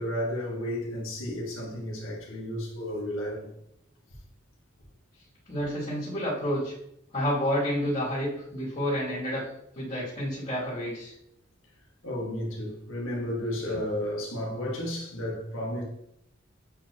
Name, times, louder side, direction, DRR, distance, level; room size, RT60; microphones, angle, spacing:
voice 1, 0.0-3.5 12.0-15.8, left 1 dB, 80° left, 1.8 m, -32 dB
voice 2, 5.5-6.7 7.1-9.4 9.7-11.1, equal, 35° left, 2.7 m, -29 dB
8.5 x 4.9 x 3.0 m
head